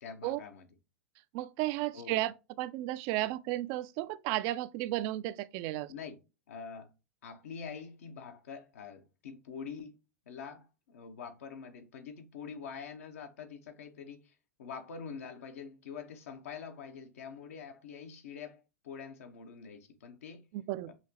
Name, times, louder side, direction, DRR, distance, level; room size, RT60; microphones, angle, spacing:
voice 1, 0.0-0.7 1.9-2.2 5.9-6.2 6.5-6.9 7.2-10.0 10.3-20.5 20.9-21.0, left 6 dB, 65° left, 0.8 m, -45 dB
voice 2, 1.3-5.9 20.5-20.9, right 16 dB, 45° right, 0.3 m, -34 dB
5.7 x 2.9 x 2.8 m
hypercardioid pair, 100°, 8 cm